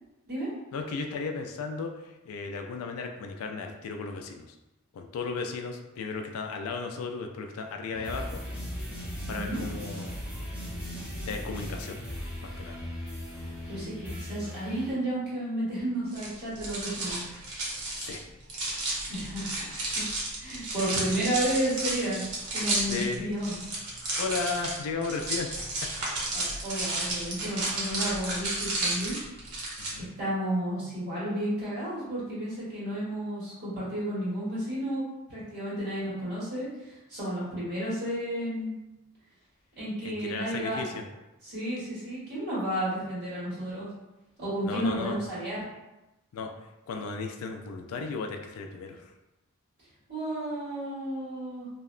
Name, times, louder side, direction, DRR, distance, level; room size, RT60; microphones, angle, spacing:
voice 1, 0.7-4.5 4.9-8.4 9.3-10.1 11.3-12.0 12.4-12.8 18.0-18.2 22.9-23.3 24.2-25.5 25.8-25.9 29.8-30.1 40.0-41.0 44.6-45.2 46.3-46.5 46.9-49.1, left 4 dB, 75° left, 3 dB, 0.3 m, -35 dB
sound 1, 7.9-14.9, equal, 5° right, 0.6 m, -37 dB
voice 2, 9.3-9.6 13.7-17.2 19.1-19.6 19.9-20.0 20.4-22.2 22.5-23.6 26.3-29.2 30.2-35.0 35.3-38.7 39.8-40.8 41.4-43.9 44.4-45.6 50.1-51.7, right 1 dB, 45° right, -10 dB, 1.5 m, -32 dB
sound 2, 16.1-29.9, right 2 dB, 85° right, 0.8 m, -32 dB
2.7 x 2.1 x 2.4 m, 0.99 s
head